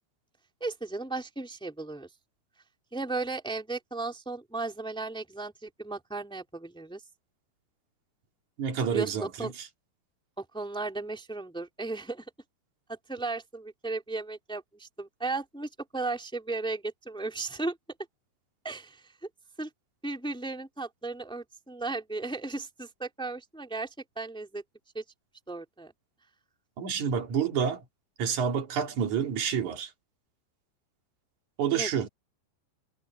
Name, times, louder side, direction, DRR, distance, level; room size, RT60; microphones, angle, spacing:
voice 1, 0.6-2.1 2.9-7.0 8.9-9.5 10.4-12.2 12.9-17.8 18.6-19.1 19.6-19.7 20.0-24.6 24.9-25.0 25.5-25.9 31.7-31.9, right 3 dB, ahead, 2.2 m, -35 dB
voice 2, 8.6-9.5 26.8-27.8 28.2-29.9 31.6-32.1, right 7 dB, 45° right, 3.7 m, -28 dB
omnidirectional pair, 5.5 m